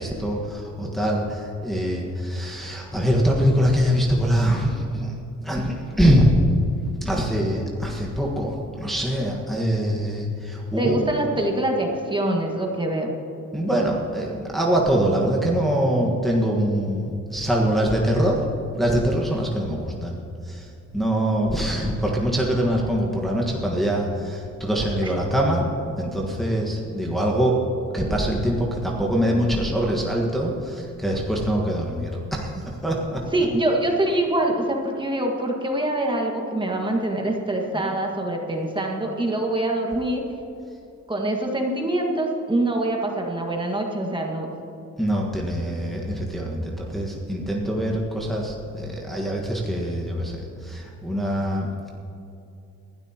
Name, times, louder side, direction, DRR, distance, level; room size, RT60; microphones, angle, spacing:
voice 1, 0.0-5.1 5.4-6.3 7.0-11.1 13.5-18.4 18.7-20.2 20.5-20.7 20.9-25.7 26.0-27.6 27.9-32.5 32.8-33.2 37.7-37.9 45.0-51.7, equal, ahead, -3 dB, 1.5 m, -23 dB
voice 2, 10.8-13.2 25.0-25.1 33.3-40.2 41.1-44.5, right 1 dB, 15° right, 0 dB, 1.8 m, -24 dB
20.0 x 12.5 x 3.0 m, 2.7 s
cardioid pair, 90°, 30 cm